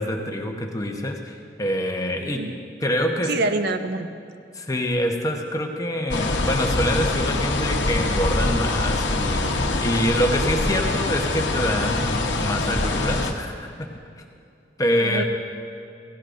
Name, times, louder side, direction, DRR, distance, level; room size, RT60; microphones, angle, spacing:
voice 1, 0.0-2.4 2.8-3.3 4.5-13.9 14.8-15.2, equal, 20° left, 2 dB, 1.0 m, -25 dB
voice 2, 3.3-4.1 15.0-15.2, right 2 dB, 65° right, 8 dB, 0.7 m, -25 dB
sound 1, 6.1-13.3, left 2 dB, 80° left, 1.0 m, -24 dB
16.5 x 16.0 x 2.6 m, 2.5 s
head